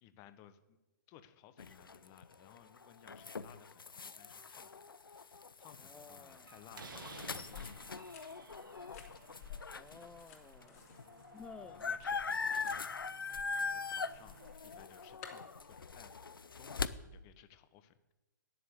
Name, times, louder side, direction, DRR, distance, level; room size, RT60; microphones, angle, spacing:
voice 1, 0.0-0.8 1.1-8.0 8.3-8.7 11.6-12.9 13.6-18.1, left 11 dB, 30° left, 11 dB, 1.0 m, -60 dB
sound 1, 1.6-10.1 10.6-10.7 10.9-16.9, left 4 dB, 90° left, 0.7 m, -41 dB
voice 2, 5.8-6.5 9.7-10.8 11.3-11.8, left 4 dB, 5° left, 7 dB, 0.4 m, -53 dB
Slam, 5.9-14.5, right 4 dB, 75° right, 1.7 m, -57 dB
sound 2, 7.3-15.9, left 8 dB, 45° left, 2.8 m, -55 dB
10.5 x 7.4 x 8.1 m, 1.0 s
hypercardioid pair, 130°, 11 cm